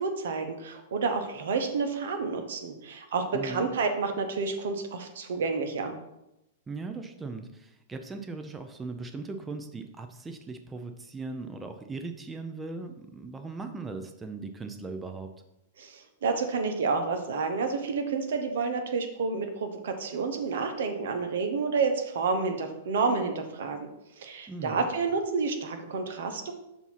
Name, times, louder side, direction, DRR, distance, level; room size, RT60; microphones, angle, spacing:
voice 1, 0.0-5.9 15.8-23.9 24.2-26.5, right 4 dB, 70° right, 6 dB, 1.0 m, -29 dB
voice 2, 3.3-3.7 6.7-15.3 24.5-24.9, right 3 dB, 15° right, 6 dB, 0.6 m, -39 dB
7.0 x 2.8 x 5.8 m, 0.90 s
hypercardioid pair, 110°, 0 cm